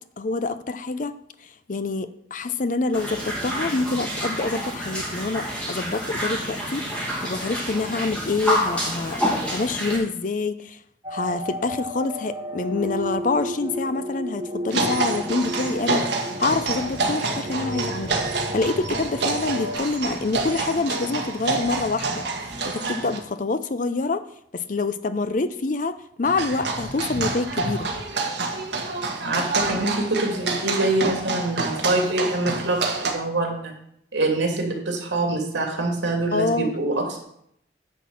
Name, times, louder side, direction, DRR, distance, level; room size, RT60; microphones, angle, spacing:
voice 1, 0.2-1.1 1.7-9.2 9.5-10.8 11.1-16.1 16.4-22.2 22.6-24.2 24.5-27.9 36.3-36.7, left 3 dB, 45° left, 12 dB, 0.5 m, -26 dB
sound 1, 2.9-10.0, equal, 5° left, 2.2 m, -28 dB
sound 2, 11.0-19.8, equal, 20° right, 1.5 m, -33 dB
sound 3, 14.7-23.2 26.2-33.1, right 3 dB, 70° right, 1.5 m, -28 dB
voice 2, 29.2-33.7 34.1-37.2, right 2 dB, 85° right, 1 dB, 2.7 m, -25 dB
10.0 x 4.5 x 7.3 m, 0.72 s
head